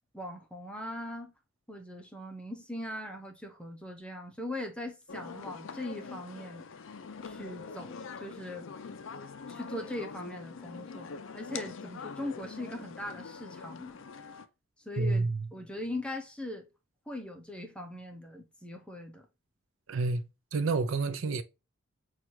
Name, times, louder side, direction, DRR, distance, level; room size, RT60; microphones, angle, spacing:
voice 1, 0.1-1.3 1.7-6.7 7.2-8.0 8.2-8.7 9.5-14.0 14.8-16.7 17.1-19.3, left 1 dB, 5° left, 0.7 m, -40 dB
sound 1, 5.1-14.5, left 5 dB, 60° left, 0.4 m, -44 dB
voice 2, 15.0-15.4 19.9-21.4, right 3 dB, 60° right, 0.5 m, -29 dB
6.1 x 2.4 x 2.7 m
head